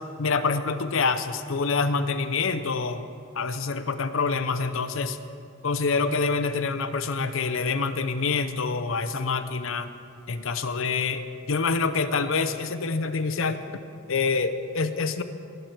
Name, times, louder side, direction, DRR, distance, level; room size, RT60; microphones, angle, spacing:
voice 1, 0.2-3.0 3.3-5.2 5.6-9.9 10.3-13.6 14.1-15.2, left 4 dB, 65° left, 10 dB, 0.7 m, -26 dB
23.0 x 7.9 x 4.6 m, 2.4 s
head